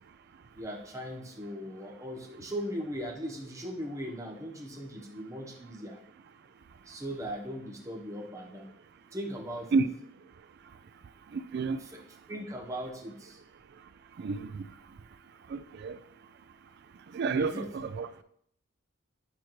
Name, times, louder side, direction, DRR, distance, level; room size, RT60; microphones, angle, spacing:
voice 1, 0.6-6.0 6.8-8.7 9.1-9.8 11.8-13.4 17.3-17.7, equal, 15° right, 0.9 m, -39 dB
voice 2, 11.3-11.8 14.2-14.6 15.5-16.0 17.1-18.1, right 4 dB, 55° right, 0.4 m, -30 dB
8.6 x 4.4 x 3.0 m
head